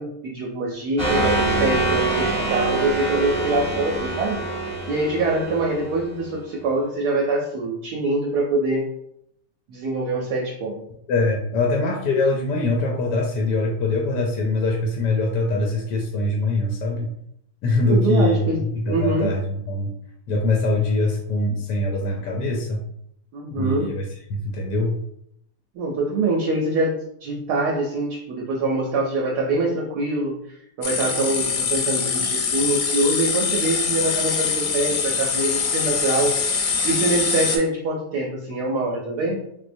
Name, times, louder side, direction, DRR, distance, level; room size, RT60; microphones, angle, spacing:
voice 1, 0.0-4.4 4.9-8.9 9.7-10.8 17.9-18.6 18.9-19.3 23.3-24.0 25.7-27.0 27.2-30.4 30.8-39.4, right 2 dB, 70° right, -1 dB, 1.0 m, -24 dB
sound 1, 1.0-6.4, right 2 dB, 35° right, 0.4 m, -25 dB
voice 2, 11.1-17.1 17.6-19.9 20.3-22.8 23.5-25.0, left 2 dB, 75° left, 1 dB, 1.1 m, -23 dB
sound 2, 30.8-37.6, left 5 dB, 90° left, 1.4 m, -23 dB
3.8 x 2.7 x 2.5 m, 0.75 s
omnidirectional pair, 2.0 m